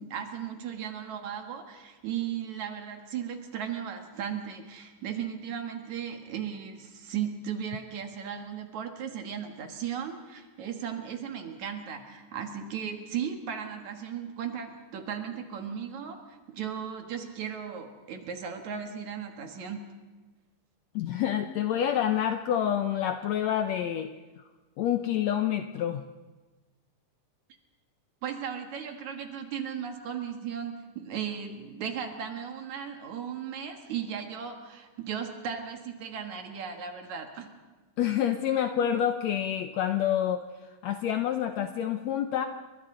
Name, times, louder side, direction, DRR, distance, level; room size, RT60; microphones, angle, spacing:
voice 1, 0.0-19.9 28.2-37.5, right 8 dB, 65° right, 4 dB, 2.8 m, -36 dB
voice 2, 20.9-24.1 24.4-24.5 24.8-26.0 38.0-40.4 40.8-42.5, left 10 dB, 75° left, 7 dB, 1.6 m, -27 dB
29.0 x 23.5 x 3.8 m, 1.2 s
omnidirectional pair, 3.8 m